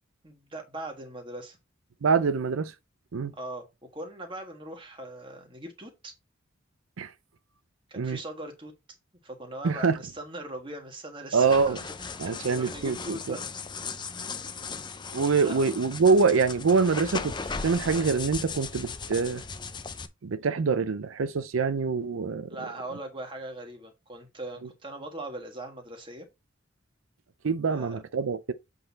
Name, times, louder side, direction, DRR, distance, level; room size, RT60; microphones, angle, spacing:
voice 1, 0.2-1.6 3.3-3.6 3.9-6.1 7.9-8.7 9.2-13.4 15.4-15.7 22.5-26.3 27.7-28.0, right 1 dB, 25° right, 1.6 m, -40 dB
voice 2, 2.0-2.7 3.1-3.3 7.0-7.1 8.0-8.2 9.6-10.0 11.3-11.8 12.2-13.4 15.1-17.3 17.6-19.4 20.2-22.5 27.4-28.5, right 5 dB, 85° right, 0.5 m, -25 dB
sound 1, 11.4-20.1, left 5 dB, 20° left, 0.6 m, -37 dB
7.9 x 4.0 x 4.1 m
head